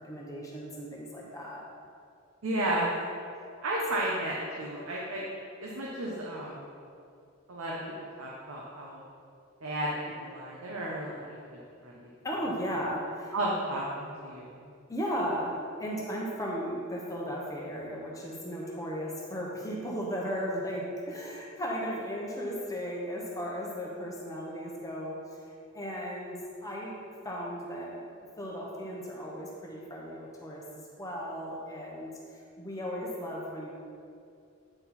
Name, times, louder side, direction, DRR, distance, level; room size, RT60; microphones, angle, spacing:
voice 1, 0.0-1.6 12.2-13.3 14.9-28.0 28.4-33.7, equal, 15° left, -3 dB, 0.9 m, -36 dB
voice 2, 2.4-2.9 3.6-5.2 5.6-6.7 7.5-7.8 8.2-9.0 9.6-9.9 10.2-12.1 13.3-13.9 14.2-14.5, right 1 dB, 85° right, -4 dB, 0.9 m, -33 dB
8.9 x 4.3 x 4.2 m, 2.4 s
head